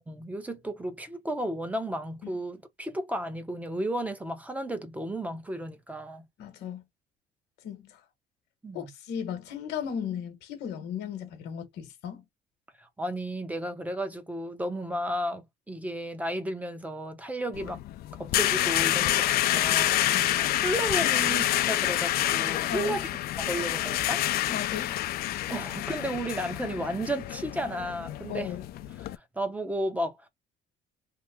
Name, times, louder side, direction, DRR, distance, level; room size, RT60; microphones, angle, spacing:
voice 1, 0.1-6.3 8.6-8.9 12.8-17.8 18.2-19.9 20.6-23.1 23.4-24.2 25.5-28.5 29.0-30.3, right 1 dB, 10° right, 0.7 m, -33 dB
voice 2, 6.4-6.8 7.6-8.0 8.7-12.2 20.1-20.4 22.7-23.0 24.5-25.1 28.3-28.6, left 8 dB, 80° left, 1.0 m, -36 dB
sound 1, 17.5-29.2, left 14 dB, 65° left, 0.4 m, -28 dB
3.1 x 2.1 x 3.4 m
cardioid pair, 110°, 17 cm